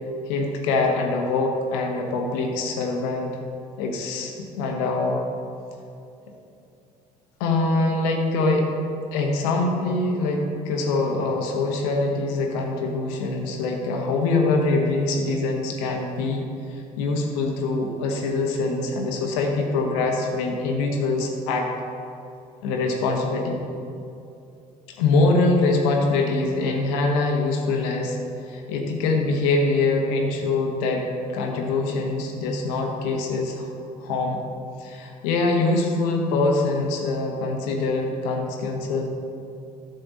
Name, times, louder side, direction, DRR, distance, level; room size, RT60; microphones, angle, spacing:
voice 1, 0.3-3.3 3.8-5.2 7.4-8.7 9.1-16.4 16.7-21.7 22.6-23.6 24.9-28.2 28.4-31.1 31.3-33.7 34.0-34.4 34.8-39.1, left 3 dB, 70° left, 1 dB, 1.2 m, -24 dB
10.5 x 6.7 x 4.1 m, 2.7 s
hypercardioid pair, 55°, 21 cm